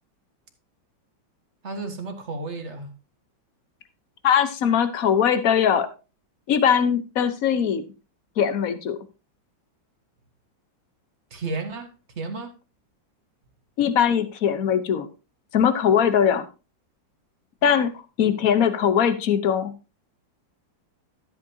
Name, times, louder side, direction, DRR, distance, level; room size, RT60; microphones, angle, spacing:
voice 1, 1.6-2.9 11.3-12.5, right 3 dB, 35° right, 5 dB, 1.8 m, -33 dB
voice 2, 4.2-5.9 6.5-7.8 8.4-9.0 13.8-15.1 15.5-16.5 17.6-17.9 18.2-19.7, left 8 dB, 55° left, 11 dB, 1.3 m, -21 dB
13.0 x 8.4 x 2.8 m, 0.30 s
omnidirectional pair, 2.1 m